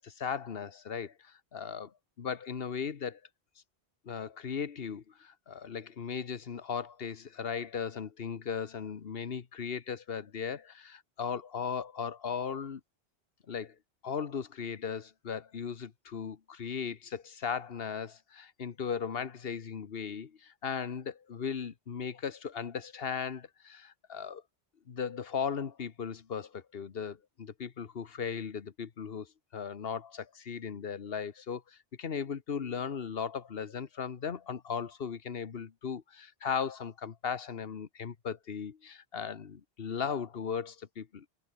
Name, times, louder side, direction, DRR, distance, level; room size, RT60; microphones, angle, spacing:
voice 1, 0.0-3.2 4.0-12.8 13.5-13.7 14.0-24.4 24.9-41.2, left 6 dB, 65° left, 1.3 m, -37 dB
omnidirectional pair, 1.1 m